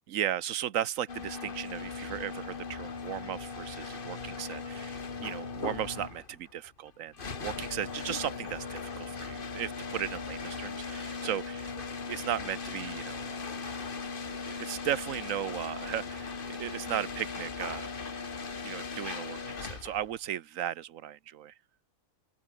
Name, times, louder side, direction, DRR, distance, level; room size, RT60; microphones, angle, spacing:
voice 1, 0.1-11.7 12.1-13.4 14.3-17.9 18.6-21.5, right 11 dB, 70° right, 1.2 m, -36 dB
sound 1, 1.1-20.1, left 5 dB, 40° left, 1.6 m, -39 dB
open air
omnidirectional pair, 1.5 m